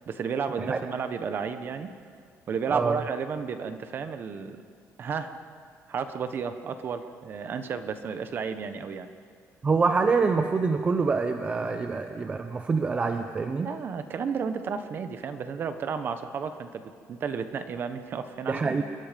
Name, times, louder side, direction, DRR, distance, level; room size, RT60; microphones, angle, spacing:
voice 1, 0.0-1.9 2.5-4.6 5.0-5.3 5.9-9.1 13.6-18.8, right 6 dB, 40° right, 9 dB, 1.3 m, -32 dB
voice 2, 2.7-3.0 9.6-13.7 18.5-18.8, right 4 dB, 20° right, 7 dB, 0.7 m, -25 dB
27.5 x 22.5 x 5.3 m, 2.1 s
cardioid pair, 175°, 6 cm